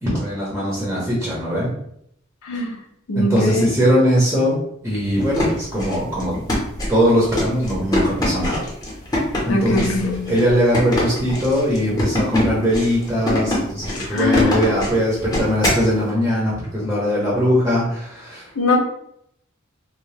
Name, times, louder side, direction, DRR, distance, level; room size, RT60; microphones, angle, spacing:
voice 1, 0.0-1.7 3.1-4.6 4.8-6.3 6.9-8.7 9.4-18.5, equal, 10° right, -7 dB, 0.8 m, -20 dB
voice 2, 2.4-2.8 3.1-3.7 9.5-10.3 13.9-14.6 18.6-18.8, left 2 dB, 80° left, 1 dB, 0.5 m, -21 dB
sound 1, 5.1-15.9, left 1 dB, 20° left, 0.9 m, -24 dB
2.7 x 2.1 x 3.2 m, 0.72 s
head